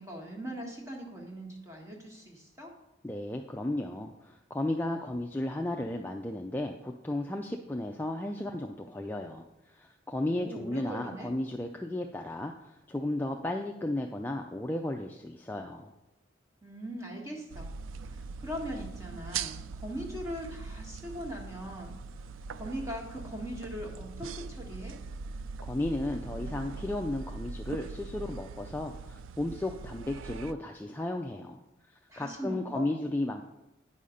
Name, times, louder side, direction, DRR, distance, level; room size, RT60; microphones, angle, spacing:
voice 1, 0.0-2.7 10.2-11.3 16.6-17.7 18.0-21.9 22.5-24.9 32.1-32.9, equal, 15° right, 0 dB, 1.3 m, -40 dB
voice 2, 3.0-15.9 25.6-31.6 31.8-33.4, left 1 dB, 10° left, 3 dB, 0.3 m, -34 dB
sound 1, 17.5-30.5, right 4 dB, 90° right, 0.4 m, -41 dB
9.2 x 5.6 x 5.0 m, 0.95 s
head